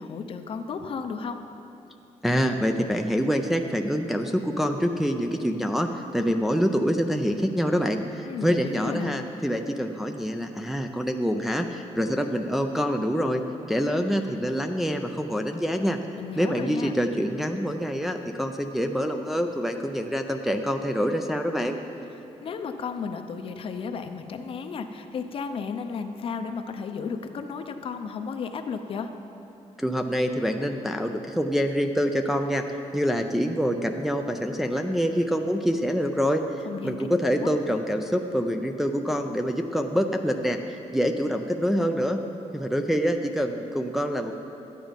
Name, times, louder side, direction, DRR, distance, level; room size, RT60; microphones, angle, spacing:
voice 1, 0.0-1.4 8.2-9.1 16.2-16.9 22.4-29.1 36.6-37.1, left 5 dB, 50° left, 7 dB, 0.6 m, -33 dB
voice 2, 2.2-13.4 13.7-16.0 16.4-21.8 29.8-32.6 32.9-42.2 42.5-44.3, equal, ahead, 4 dB, 0.4 m, -26 dB
12.5 x 9.1 x 5.2 m, 2.9 s
wide cardioid pair, 175°, 12 cm